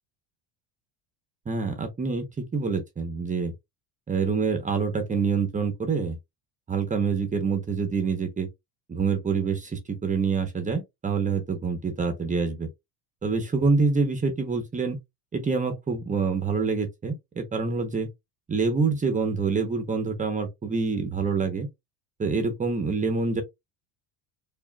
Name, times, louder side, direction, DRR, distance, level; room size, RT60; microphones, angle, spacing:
voice 1, 1.5-3.5 4.1-6.2 6.7-8.5 8.9-12.7 13.2-15.0 15.3-18.1 18.5-21.7 22.2-23.4, right 4 dB, 20° right, 0.8 m, -26 dB
4.8 x 2.5 x 2.2 m
cardioid pair, 130°, 43 cm